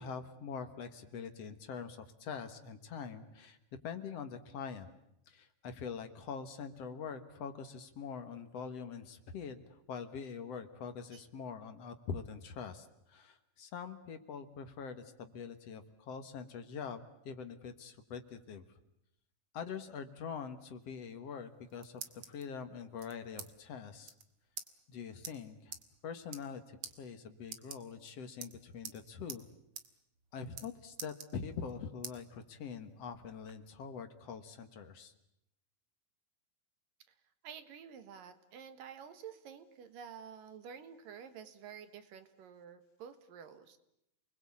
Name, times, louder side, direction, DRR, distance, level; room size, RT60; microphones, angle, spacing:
voice 1, 0.0-4.9 5.3-9.6 9.9-18.7 19.5-24.1 24.9-25.8 26.0-29.4 30.3-35.1, left 6 dB, 55° left, 9 dB, 2.1 m, -44 dB
sound 1, 21.4-22.4 23.0-23.5 23.8-23.9 24.0-24.2 24.6-24.7 25.2-25.3 25.7-25.8 26.2-26.5 26.8-26.9 27.4-28.1 28.4-29.0 29.3-29.4 29.7-29.9 30.1-30.7 31.0-31.7 32.0-32.2 32.7-33.5, right 7 dB, 50° right, 2.1 m, -46 dB
voice 2, 37.4-43.8, right 7 dB, 70° right, 10 dB, 3.0 m, -50 dB
28.5 x 21.0 x 8.6 m, 0.81 s
omnidirectional pair, 4.2 m